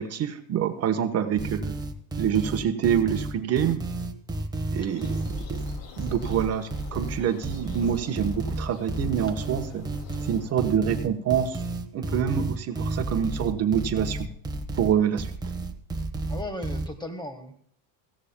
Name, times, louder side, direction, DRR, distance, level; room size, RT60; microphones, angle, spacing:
voice 1, 0.0-1.8 2.2-3.8 4.7-5.6 6.0-9.9 10.2-11.6 11.9-14.3 14.8-15.3, right 8 dB, 40° right, 6 dB, 1.1 m, -26 dB
sound 1, 1.4-16.9, right 2 dB, 10° right, 1.2 m, -32 dB
sound 2, 4.8-10.5, left 4 dB, 65° left, 2.4 m, -47 dB
voice 2, 16.3-17.6, left 1 dB, 10° left, 8 dB, 1.4 m, -36 dB
17.5 x 15.5 x 2.2 m, 0.62 s
cardioid pair, 150°, 39 cm